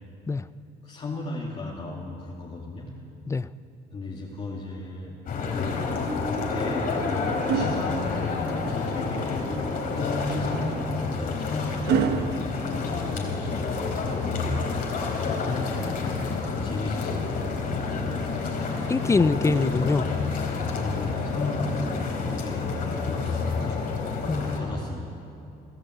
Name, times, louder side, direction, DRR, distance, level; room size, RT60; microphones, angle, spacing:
voice 1, 0.8-2.9 3.9-5.8 6.5-13.8 15.4-16.3 16.6-17.4 20.7-23.8 24.4-25.1, left 2 dB, 35° left, -4 dB, 2.6 m, -35 dB
sound 1, 5.3-24.6, left 4 dB, 60° left, 3.8 m, -29 dB
sound 2, 6.3-8.8 10.4-13.6 15.3-16.5 18.5-20.3 21.5-21.7, right 6 dB, 75° right, 1.4 m, -33 dB
voice 2, 18.9-20.1 24.3-24.8, left 4 dB, 15° left, 15 dB, 0.6 m, -24 dB
24.5 x 13.0 x 8.0 m, 2.7 s
cardioid pair, 110°, 17 cm